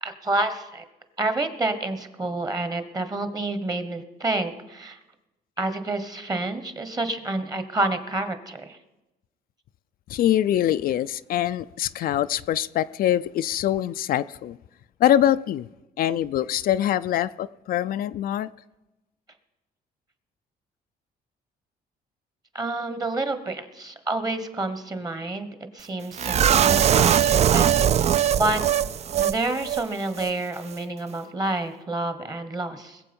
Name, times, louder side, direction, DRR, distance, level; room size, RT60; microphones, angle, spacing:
voice 1, 0.0-0.8 1.2-5.0 5.6-8.8 22.5-25.5 25.7-28.6 29.1-33.0, right 2 dB, 25° right, 1.2 m, -29 dB
voice 2, 10.1-14.6 15.0-15.7 16.0-18.5, left 11 dB, 60° left, 0.4 m, -24 dB
sound 1, 26.2-29.4 29.6-29.8 30.2-30.3, right 9 dB, 40° right, 0.4 m, -20 dB
21.0 x 7.6 x 5.3 m
cardioid pair, 125°, 16 cm